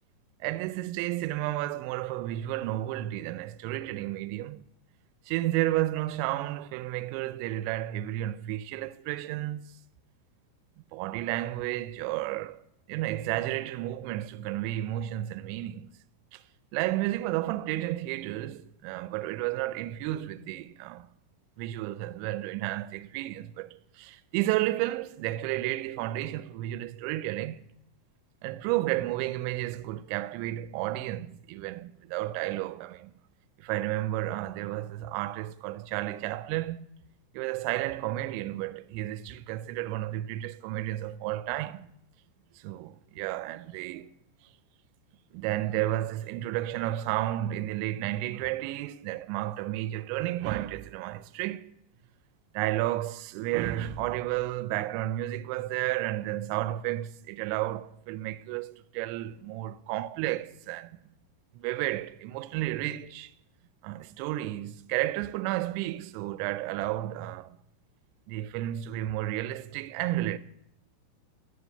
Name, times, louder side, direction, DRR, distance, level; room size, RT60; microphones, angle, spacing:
voice 1, 0.4-4.6 5.3-9.6 10.9-12.6 12.9-15.9 16.3-16.4 16.7-21.1 21.6-27.7 28.4-33.1 33.6-36.9 37.3-41.9 42.6-44.1 45.3-51.8 52.5-61.0 61.6-63.3 63.8-67.6 68.3-70.4, right 15 dB, 85° right, 2.7 m, -32 dB
10.0 x 9.4 x 6.5 m
omnidirectional pair, 5.6 m